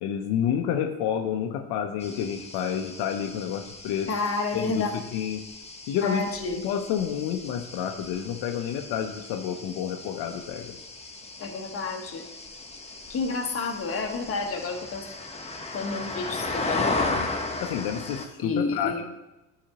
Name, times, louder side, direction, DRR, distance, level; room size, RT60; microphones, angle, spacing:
voice 1, 0.0-4.1 4.5-5.4 5.9-6.2 6.5-10.8 17.1-18.9, left 9 dB, 75° left, 4 dB, 0.7 m, -29 dB
sound 1, 2.0-18.3, left 2 dB, 15° left, 0.8 m, -36 dB
voice 2, 4.1-4.9 6.0-6.6 11.4-12.2 13.1-15.1 15.7-17.2 18.4-19.0, left 3 dB, 35° left, 2 dB, 1.2 m, -30 dB
10.0 x 5.0 x 2.9 m, 1.0 s
supercardioid pair, 85°, 39 cm